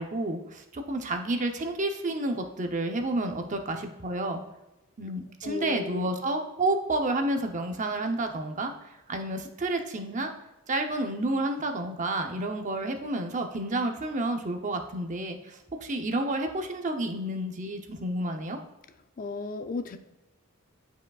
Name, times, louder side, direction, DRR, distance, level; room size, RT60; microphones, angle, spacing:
voice 1, 0.0-4.4 5.0-8.7 9.1-10.3 10.7-18.6, right 2 dB, 35° right, 5 dB, 0.7 m, -30 dB
voice 2, 5.4-6.1 19.2-20.0, left 4 dB, 40° left, 9 dB, 0.5 m, -34 dB
11.0 x 5.0 x 2.3 m, 0.98 s
head